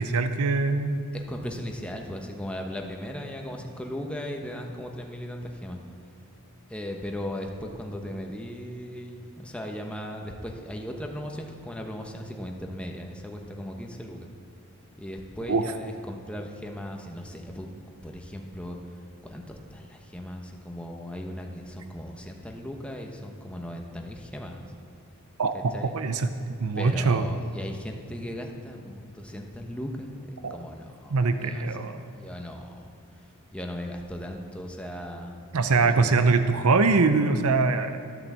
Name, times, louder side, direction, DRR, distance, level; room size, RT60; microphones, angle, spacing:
voice 1, 0.0-1.0 15.5-15.6 25.4-27.3 30.4-30.6 31.1-32.0 35.5-38.2, right 4 dB, 80° right, 9 dB, 0.6 m, -23 dB
voice 2, 1.1-5.8 6.7-14.3 15.0-17.7 18.0-18.8 19.2-24.6 25.5-26.0 26.7-31.6 32.1-32.9 33.5-35.4 35.7-36.4, equal, 5° left, 2 dB, 1.1 m, -37 dB
13.5 x 8.7 x 7.4 m, 2.2 s
head